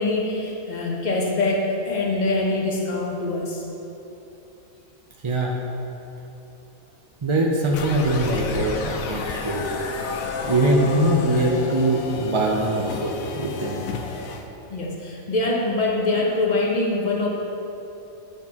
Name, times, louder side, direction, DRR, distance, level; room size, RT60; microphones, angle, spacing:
voice 1, 0.0-3.7 14.7-17.3, left 2 dB, 35° left, -1 dB, 1.0 m, -24 dB
voice 2, 7.2-9.8 10.4-13.8, right 1 dB, 45° right, -2 dB, 0.4 m, -22 dB
sound 1, 7.7-14.5, left 4 dB, 80° left, 1.0 m, -31 dB
10.5 x 6.2 x 2.9 m, 2.9 s
omnidirectional pair, 1.4 m